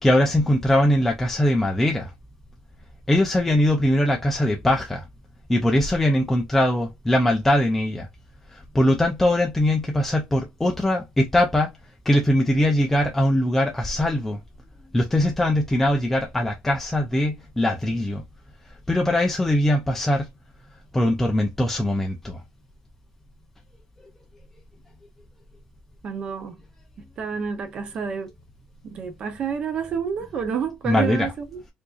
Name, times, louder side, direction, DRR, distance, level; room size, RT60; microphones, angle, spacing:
voice 1, 0.0-2.1 3.1-5.0 5.5-8.1 8.5-11.7 12.1-14.4 14.9-18.2 18.7-20.3 20.9-22.4 30.9-31.3, left 1 dB, 5° left, 0.5 m, -21 dB
voice 2, 26.0-26.6 27.0-28.3 28.8-31.6, right 6 dB, 35° right, 0.8 m, -29 dB
4.7 x 2.6 x 2.4 m
cardioid pair, 175°, 3 cm